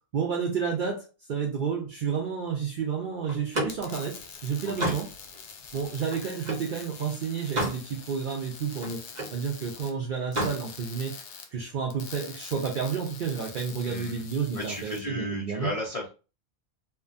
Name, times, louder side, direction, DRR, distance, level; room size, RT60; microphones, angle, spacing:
voice 1, 0.1-5.1 5.7-9.0 9.3-11.1 11.5-15.7, right 6 dB, 60° right, 0 dB, 0.6 m, -30 dB
Slam, 3.3-6.7 7.2-7.9 8.2-9.4 10.2-10.6, right 1 dB, 45° right, 0.9 m, -32 dB
sound 1, 3.5-15.0, left 6 dB, 85° left, 0.9 m, -45 dB
voice 2, 4.6-4.9 13.8-14.2 14.5-16.1, left 2 dB, 45° left, -2 dB, 0.5 m, -34 dB
2.8 x 2.2 x 2.4 m, 0.33 s
omnidirectional pair, 1.1 m